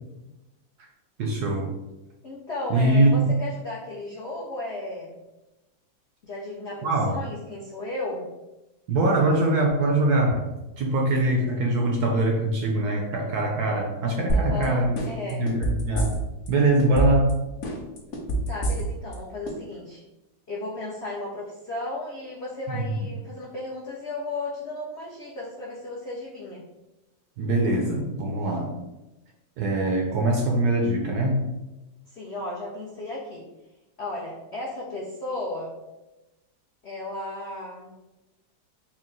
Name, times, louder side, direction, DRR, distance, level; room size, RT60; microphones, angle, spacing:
voice 1, 1.2-1.7 2.7-3.3 6.8-7.2 8.9-10.4 10.8-14.9 15.3-16.1 16.5-17.4 22.7-23.1 27.4-28.7 29.6-31.5, right 2 dB, 75° right, 0 dB, 0.9 m, -23 dB
voice 2, 2.2-5.2 6.2-8.3 14.3-15.4 18.5-20.0 20.5-26.6 32.1-33.4 34.0-35.8 36.8-37.9, left 2 dB, 90° left, -5 dB, 0.5 m, -34 dB
sound 1, 14.3-14.6 15.0-16.5 16.8-17.3 17.6-19.1 19.5-19.6, right 2 dB, 60° left, 0.8 m, -25 dB
4.5 x 2.1 x 3.8 m, 1.0 s
omnidirectional pair, 2.1 m